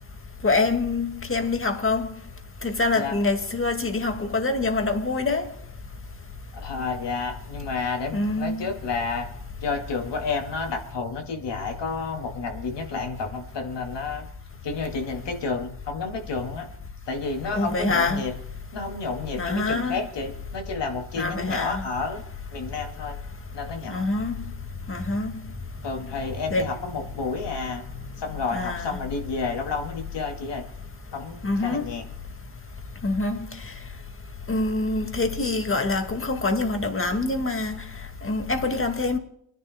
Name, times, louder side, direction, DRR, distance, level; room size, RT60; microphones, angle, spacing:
voice 1, 0.4-2.1 2.6-5.5 8.1-8.7 17.5-18.2 19.4-20.0 21.2-21.9 23.9-24.3 24.9-25.3 26.5-26.7 28.5-29.0 31.4-31.9 33.0-33.4 34.5-37.7 38.2-39.2, left 3 dB, 25° left, 2.1 m, -25 dB
voice 2, 6.5-9.3 9.6-14.3 14.6-16.7 17.1-18.3 18.7-22.2 22.5-23.2 23.5-24.1 25.8-27.8 28.2-30.6 31.1-32.0, left 4 dB, 65° left, 2.4 m, -30 dB
30.0 x 10.5 x 2.2 m
cardioid pair, 70°, 46 cm